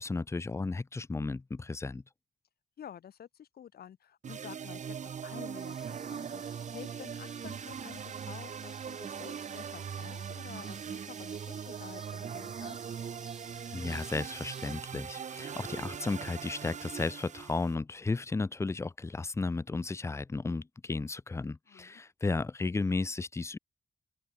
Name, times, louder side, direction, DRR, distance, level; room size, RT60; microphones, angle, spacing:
voice 1, 0.0-2.0 13.7-23.6, left 3 dB, 15° left, 0.5 m, -34 dB
voice 2, 2.8-5.7 6.1-12.8 21.7-22.0, left 9 dB, 85° left, 1.7 m, -49 dB
sound 1, 4.2-17.7, right 7 dB, 50° right, 0.7 m, -41 dB
sound 2, 5.6-14.8, equal, 5° right, 1.7 m, -55 dB
open air
wide cardioid pair, 145°, 16 cm